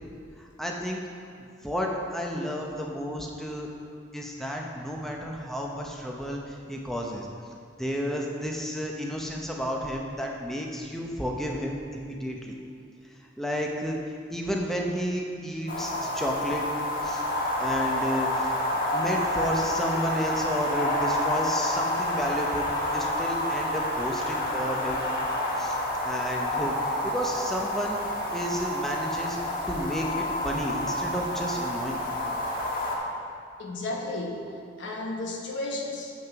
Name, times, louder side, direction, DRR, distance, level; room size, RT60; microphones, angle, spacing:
voice 1, 0.4-1.0 1.6-3.7 4.1-7.3 7.8-12.6 13.4-14.0 14.3-16.7 17.0-17.2 17.6-25.0 25.6-28.0 28.3-29.4 29.7-32.0, equal, ahead, -1 dB, 0.7 m, -32 dB
sound 1, 15.7-33.0, left 1 dB, 50° left, 1.4 m, -29 dB
voice 2, 33.6-34.5 34.8-36.2, left 2 dB, 85° left, 0 dB, 1.2 m, -33 dB
7.5 x 6.5 x 5.8 m, 2.3 s
head